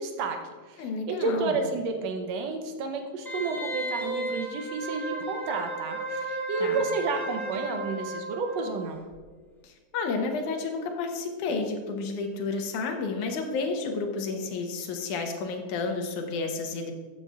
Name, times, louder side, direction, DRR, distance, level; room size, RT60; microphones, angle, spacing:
voice 1, 0.0-9.0, right 4 dB, 75° right, 5 dB, 1.6 m, -31 dB
voice 2, 0.8-1.6 6.6-6.8 9.6-16.9, left 4 dB, 70° left, 3 dB, 2.3 m, -31 dB
Wind instrument woodwind instrument, 3.2-8.8 9.1-9.2, right 1 dB, ahead, 1.8 m, -34 dB
13.5 x 8.9 x 2.4 m, 1.4 s
omnidirectional pair, 3.9 m